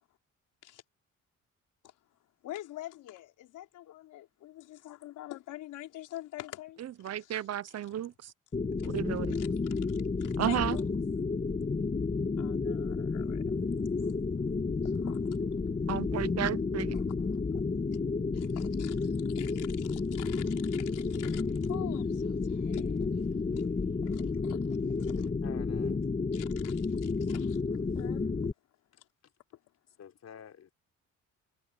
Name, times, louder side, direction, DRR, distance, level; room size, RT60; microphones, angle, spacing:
voice 1, 2.4-7.4 9.3-10.9 12.4-13.4 13.7-14.1 14.8-15.3 16.9-17.0 18.3-23.3 23.5-23.7 24.0-24.6 25.0-25.3 26.3-27.6 27.9-28.5, left 14 dB, 85° left, 4.5 m, -46 dB
voice 2, 7.0-8.3 8.8-9.4 10.4-10.8 15.9-17.0, right 11 dB, 55° right, 0.9 m, -33 dB
sound 1, 8.5-28.5, left 4 dB, 25° left, 1.8 m, -31 dB
voice 3, 25.1-26.0 27.9-28.0 28.9-29.3 30.0-30.7, left 8 dB, 60° left, 3.9 m, -51 dB
cardioid pair, 90°, 30 cm